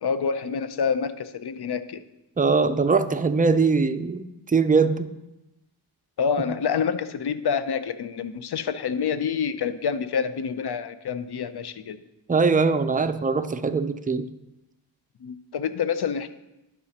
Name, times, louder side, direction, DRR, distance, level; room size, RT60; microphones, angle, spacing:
voice 1, 0.0-2.0 6.2-12.0 15.2-16.3, left 6 dB, 55° left, 12 dB, 0.6 m, -27 dB
voice 2, 2.4-5.1 12.3-14.3, right 4 dB, 20° right, 10 dB, 0.4 m, -22 dB
11.5 x 4.9 x 2.8 m, 0.95 s
cardioid pair, 45°, 48 cm